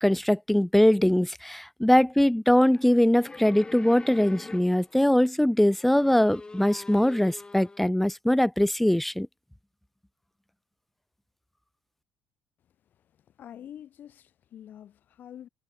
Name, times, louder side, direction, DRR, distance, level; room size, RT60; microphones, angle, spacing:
voice 1, 0.0-9.3, left 1 dB, 5° left, 0.6 m, -22 dB
sound 1, 2.6-5.1 5.6-7.9, left 3 dB, 20° left, 4.0 m, -45 dB
voice 2, 13.4-15.5, left 10 dB, 50° left, 1.3 m, -46 dB
figure-of-eight pair, 55°, 4 cm